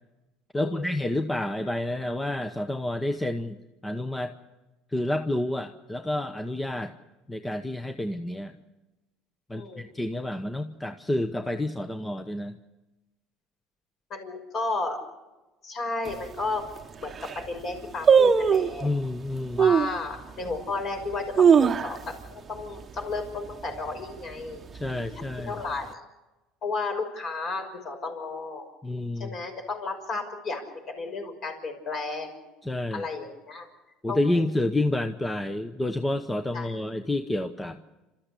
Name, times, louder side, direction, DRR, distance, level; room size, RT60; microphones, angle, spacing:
voice 1, 0.5-3.6 3.8-4.3 4.9-6.9 7.3-8.5 9.5-12.6 18.8-19.7 24.7-25.6 28.8-29.4 32.6-33.0 34.0-37.8, left 1 dB, 10° left, 8 dB, 0.9 m, -29 dB
voice 2, 9.5-9.9 14.1-15.0 15.6-16.6 17.0-18.9 19.6-24.6 25.0-26.0 26.6-28.7 29.2-32.3 32.9-33.7 34.1-34.4 36.5-36.7, left 3 dB, 45° left, 4 dB, 5.9 m, -33 dB
sound 1, 16.0-16.1 16.8-16.9 17.1-17.5 18.1-18.8 19.6-20.0 20.5-20.6 21.1-22.2 22.5-22.6 23.0-23.3 23.7-24.1 24.7-25.5 25.8-25.9, right 6 dB, 25° right, 1.0 m, -20 dB
29.5 x 13.5 x 8.4 m, 1.1 s
supercardioid pair, 125°, 0 cm